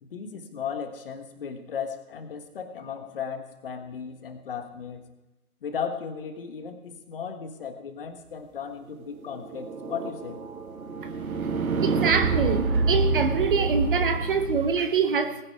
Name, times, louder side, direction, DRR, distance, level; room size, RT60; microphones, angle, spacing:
voice 1, 0.0-5.0 5.6-10.4, left 7 dB, 35° left, 8 dB, 1.5 m, -36 dB
sound 1, 9.1-14.7, right 3 dB, 65° right, 1.3 m, -27 dB
voice 2, 11.8-15.4, right 5 dB, 35° right, 9 dB, 1.1 m, -25 dB
20.0 x 10.5 x 3.5 m, 1.0 s
figure-of-eight pair, 135°, 46 cm